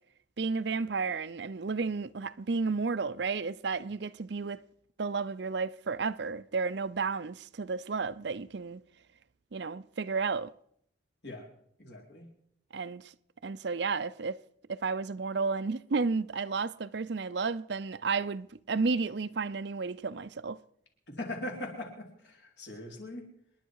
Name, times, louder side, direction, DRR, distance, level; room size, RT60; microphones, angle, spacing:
voice 1, 0.4-4.6 5.0-8.8 9.5-10.5 12.7-13.1 13.4-14.4 14.7-20.6, right 4 dB, 65° right, 0.6 m, -32 dB
voice 2, 11.8-12.3 21.1-23.3, left 1 dB, 65° left, 4.1 m, -40 dB
27.5 x 11.0 x 4.7 m
head